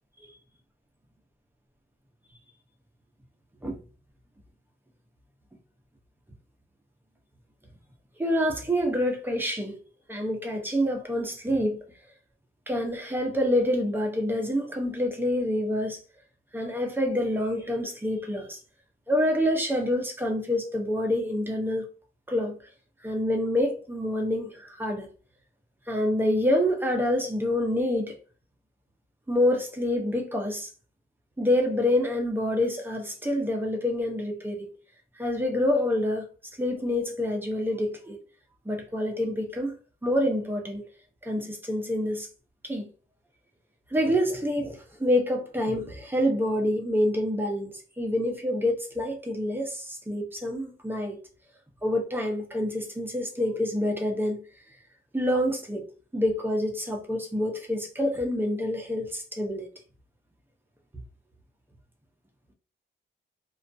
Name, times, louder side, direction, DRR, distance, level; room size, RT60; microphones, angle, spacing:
voice 1, 8.2-9.8 10.1-11.8 12.7-16.0 16.5-18.6 19.1-21.8 22.3-22.6 23.0-25.1 25.9-28.2 29.3-30.7 31.4-34.7 35.2-36.2 36.6-38.2 38.7-39.7 40.0-40.8 41.2-42.3 42.6-42.9 43.9-51.2 51.8-54.4 55.1-55.8 56.1-59.7, left 1 dB, 10° right, 0.5 m, -27 dB
2.4 x 2.2 x 2.4 m
wide cardioid pair, 140°, 21 cm